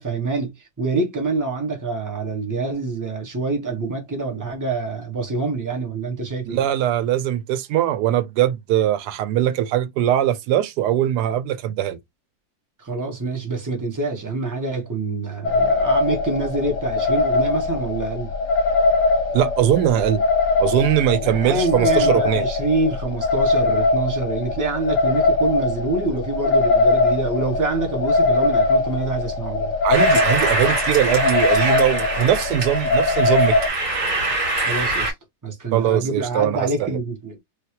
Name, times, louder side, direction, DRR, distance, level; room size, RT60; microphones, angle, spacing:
voice 1, 0.0-6.6 12.8-18.3 21.2-29.7 34.6-35.1 35.4-37.4, right 3 dB, 15° right, 0.9 m, -26 dB
voice 2, 6.5-12.0 19.3-20.2 20.6-22.5 29.8-33.6 35.7-37.0, right 11 dB, 90° right, 1.1 m, -21 dB
sound 1, 15.4-33.7, left 3 dB, 55° left, 1.0 m, -21 dB
sound 2, 29.9-35.1, right 2 dB, 55° right, 2.0 m, -24 dB
3.2 x 2.7 x 2.8 m
omnidirectional pair, 1.7 m